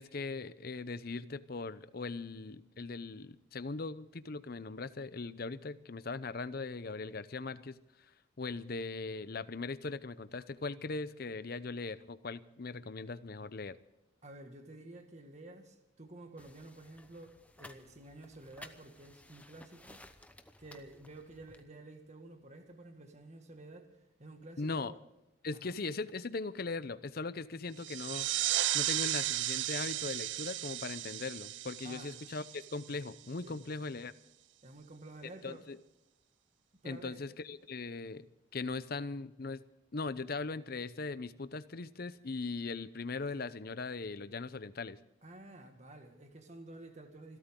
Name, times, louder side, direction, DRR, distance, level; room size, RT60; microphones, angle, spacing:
voice 1, 0.0-7.8 8.4-13.8 24.6-24.9 25.4-28.3 28.7-34.1 35.4-35.8 36.8-38.3 38.5-39.6 39.9-45.0, left 3 dB, 50° left, 15 dB, 0.6 m, -39 dB
voice 2, 14.2-20.0 20.6-23.9 24.2-25.0 25.5-25.8 31.8-32.2 33.4-33.6 34.6-35.6 36.8-37.2 45.2-47.4, right 2 dB, 35° right, 5 dB, 1.8 m, -51 dB
sound 1, 16.4-21.6, left 1 dB, 5° left, 0.8 m, -56 dB
sound 2, 27.8-33.1, right 14 dB, 65° right, 0.5 m, -35 dB
27.0 x 13.0 x 3.8 m, 0.90 s
head